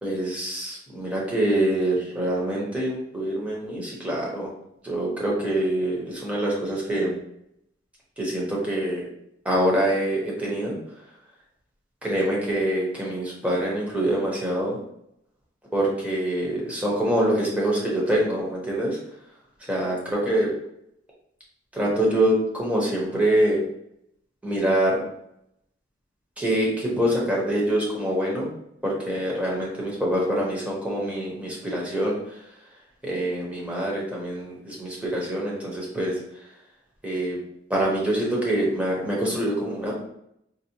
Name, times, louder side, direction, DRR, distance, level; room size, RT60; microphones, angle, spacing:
voice 1, 0.0-4.5 4.8-7.1 8.2-9.0 9.4-10.8 12.0-14.8 15.7-19.0 19.7-20.5 21.7-23.6 24.4-25.0 26.4-28.5 28.8-32.2 33.0-36.1 37.0-37.4 37.7-40.0, right 1 dB, 5° right, -4 dB, 0.8 m, -25 dB
3.9 x 2.0 x 2.9 m, 0.75 s
head